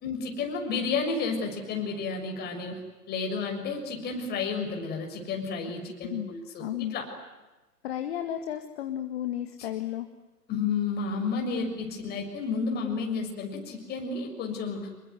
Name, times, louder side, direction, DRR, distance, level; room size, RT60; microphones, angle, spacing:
voice 1, 0.0-2.8 3.1-6.6 6.9-7.1 9.6-9.7 10.5-14.9, left 4 dB, 20° left, 3 dB, 6.5 m, -31 dB
voice 2, 6.6-6.9 7.8-10.1, left 11 dB, 40° left, 7 dB, 2.1 m, -33 dB
28.0 x 22.5 x 9.4 m, 1.1 s
figure-of-eight pair, 120°, 47 cm